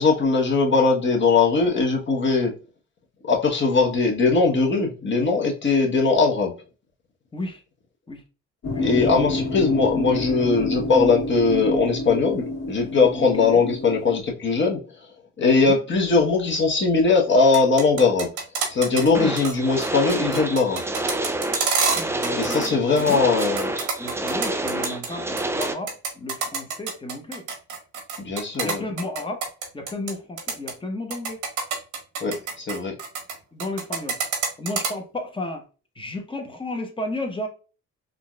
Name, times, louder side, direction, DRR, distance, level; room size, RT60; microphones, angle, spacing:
voice 1, 0.0-2.5 3.2-6.5 8.8-14.8 15.4-18.3 18.7-20.8 22.4-23.7 28.2-28.8 32.2-32.9, left 4 dB, 40° left, 1.2 m, -20 dB
sound 1, 8.6-14.2, left 2 dB, 55° left, 1.7 m, -28 dB
voice 2, 8.7-9.1 13.1-13.6 15.4-15.8 19.1-19.3 21.9-23.3 24.0-27.5 28.6-29.4 29.7-31.4 33.5-34.2 34.6-35.6 35.9-37.5, left 2 dB, 15° left, 1.0 m, -33 dB
sound 2, 17.4-19.1 19.4-19.5 19.8-22.7 23.0-25.1 25.4-30.1 30.4-30.7 31.1-33.3 33.6-34.9, right 5 dB, 85° right, 1.3 m, -27 dB
sound 3, 19.1-25.7, right 2 dB, 10° right, 0.3 m, -28 dB
3.8 x 2.4 x 2.3 m
cardioid pair, 90°, 30 cm